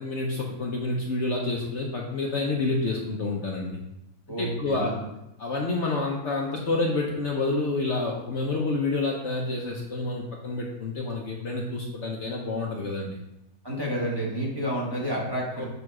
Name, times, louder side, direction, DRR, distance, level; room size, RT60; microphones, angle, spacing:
voice 1, 0.0-3.8 4.3-4.9 5.4-13.2 15.6-15.7, left 3 dB, 55° left, -1 dB, 1.0 m, -28 dB
voice 2, 4.3-5.0 13.6-15.7, equal, 15° right, -4 dB, 1.3 m, -29 dB
6.9 x 3.5 x 4.7 m, 0.86 s
omnidirectional pair, 1.6 m